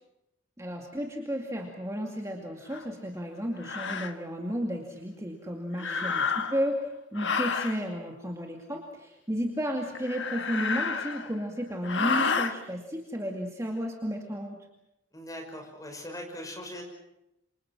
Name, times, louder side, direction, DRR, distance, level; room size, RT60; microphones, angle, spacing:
voice 1, 0.6-14.6, equal, 15° right, 1 dB, 2.4 m, -33 dB
sound 1, 2.7-2.8 3.6-4.1 5.7-6.7 7.1-7.8 9.9-11.4 11.8-12.5, left 5 dB, 60° left, 1.5 m, -30 dB
voice 2, 5.8-6.1 15.1-16.8, left 1 dB, 15° left, 3 dB, 6.0 m, -41 dB
28.0 x 26.0 x 6.3 m, 0.86 s
head